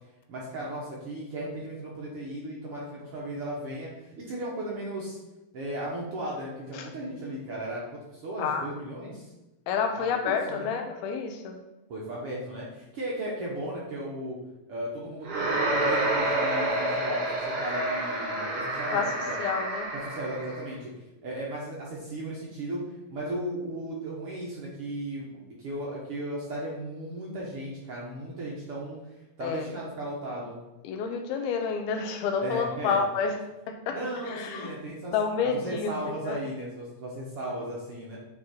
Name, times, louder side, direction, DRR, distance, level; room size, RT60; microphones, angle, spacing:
voice 1, 0.3-5.2 5.5-9.3 10.0-10.7 11.9-14.4 14.7-19.1 19.9-20.9 21.2-22.8 23.1-29.0 29.4-30.6 32.4-33.0 33.9-35.1 35.4-38.2, right 1 dB, 65° right, -4 dB, 1.4 m, -36 dB
voice 2, 8.4-8.7 9.7-11.6 18.9-19.0 19.4-19.9 29.4-29.6 30.8-33.4 33.7-34.0 34.2-34.7 35.1-36.0 36.3-36.4, left 6 dB, 80° left, 5 dB, 2.5 m, -29 dB
sound 1, 15.2-20.6, right 1 dB, 90° right, 3.6 m, -28 dB
9.9 x 3.8 x 4.4 m, 1.0 s
omnidirectional pair, 4.5 m